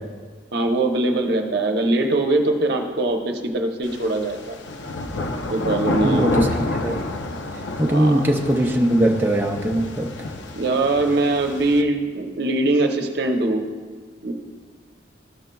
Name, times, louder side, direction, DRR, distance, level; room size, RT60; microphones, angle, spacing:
voice 1, 0.5-4.6 5.5-6.4 7.9-8.2 10.6-13.6 14.2-14.3, right 2 dB, 65° right, 3 dB, 0.8 m, -22 dB
sound 1, 3.8-11.8, left 2 dB, 80° left, 0.6 m, -29 dB
voice 2, 6.0-7.0 7.8-10.3, right 1 dB, 10° right, 0 dB, 0.5 m, -21 dB
13.0 x 6.3 x 2.3 m, 1.5 s
head